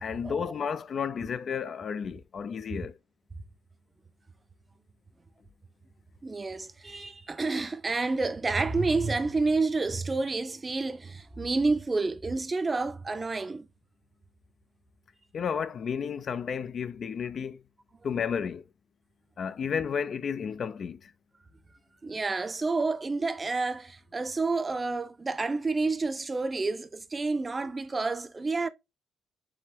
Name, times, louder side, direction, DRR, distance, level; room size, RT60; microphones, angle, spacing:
voice 1, 0.0-3.0 15.3-17.6 18.0-18.6 19.4-21.1, left 7 dB, 55° left, 0.4 m, -32 dB
voice 2, 6.2-13.7 22.0-28.7, right 3 dB, 25° right, 0.5 m, -29 dB
4.8 x 2.9 x 2.9 m
cardioid pair, 90°, 0 cm